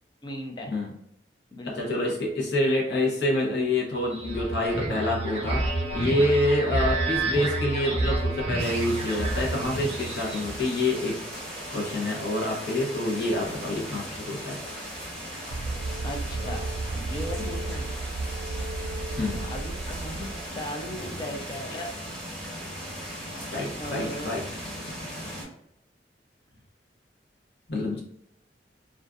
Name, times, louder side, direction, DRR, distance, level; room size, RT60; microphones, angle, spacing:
voice 1, 0.2-0.8 1.5-2.2 16.0-16.6 16.9-17.9 19.5-21.9 23.8-24.3 27.9-28.0, left 1 dB, 25° left, 2 dB, 0.4 m, -37 dB
voice 2, 1.7-14.6 19.2-19.5 23.5-24.5 27.7-28.0, left 1 dB, 65° left, -2 dB, 0.8 m, -27 dB
sound 1, 4.0-10.6, right 2 dB, 35° right, 0.7 m, -29 dB
sound 2, 8.6-25.4, equal, 5° left, 0.8 m, -38 dB
sound 3, 15.5-20.5, right 2 dB, 75° right, 0.3 m, -33 dB
2.5 x 2.3 x 2.4 m, 0.77 s
head